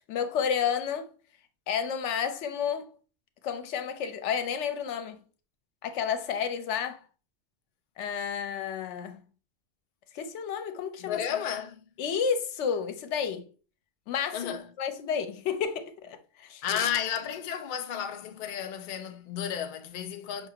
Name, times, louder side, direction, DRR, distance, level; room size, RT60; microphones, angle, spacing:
voice 1, 0.1-1.1 1.7-2.9 3.4-5.2 5.8-7.0 8.0-9.2 10.1-11.2 12.0-13.5 14.1-16.8, left 7 dB, 80° left, 0.9 m, -31 dB
voice 2, 11.0-11.8 14.3-14.6 16.6-20.5, left 9 dB, 60° left, 0.5 m, -32 dB
5.1 x 2.4 x 2.8 m
omnidirectional pair, 1.2 m